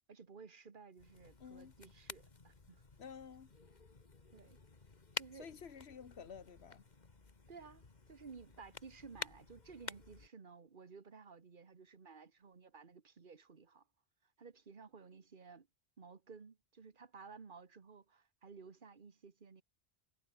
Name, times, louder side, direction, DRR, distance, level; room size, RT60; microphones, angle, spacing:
voice 1, 0.1-2.8 4.3-4.6 5.1-5.6 7.5-13.8 14.4-15.7 16.0-19.6, right 5 dB, 55° right, 1.6 m, -55 dB
sound 1, 1.0-10.3, left 3 dB, 45° left, 1.8 m, -51 dB
voice 2, 1.4-1.7 3.0-3.5 5.3-6.8, left 7 dB, 85° left, 1.5 m, -51 dB
omnidirectional pair, 1.1 m